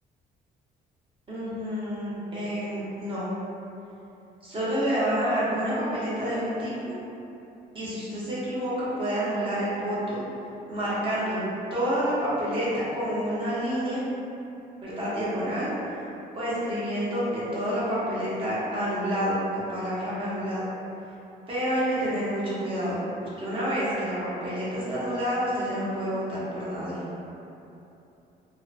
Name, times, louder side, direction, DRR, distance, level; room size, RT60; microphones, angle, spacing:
voice 1, 1.3-3.3 4.4-6.9 7.7-10.2 10.7-11.4 11.7-14.0 14.8-15.7 16.3-20.7 21.5-27.0, equal, 30° right, -9 dB, 0.8 m, -28 dB
2.7 x 2.1 x 2.5 m, 2.9 s
cardioid pair, 135°, 17 cm